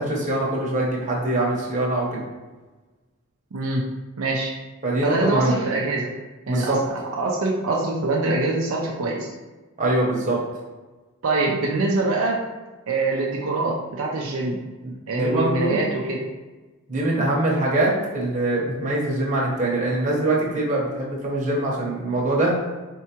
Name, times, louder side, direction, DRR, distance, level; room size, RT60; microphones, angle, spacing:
voice 1, 0.0-2.2 4.8-5.6 6.5-6.8 9.8-10.4 14.8-15.8 16.9-22.5, right 2 dB, 35° right, -4 dB, 1.0 m, -23 dB
voice 2, 3.5-3.9 4.2-4.5 5.0-6.1 6.5-9.3 11.2-12.4 12.9-14.6 15.1-16.3, right 2 dB, 75° right, -2 dB, 0.5 m, -24 dB
4.6 x 3.4 x 2.9 m, 1.2 s
head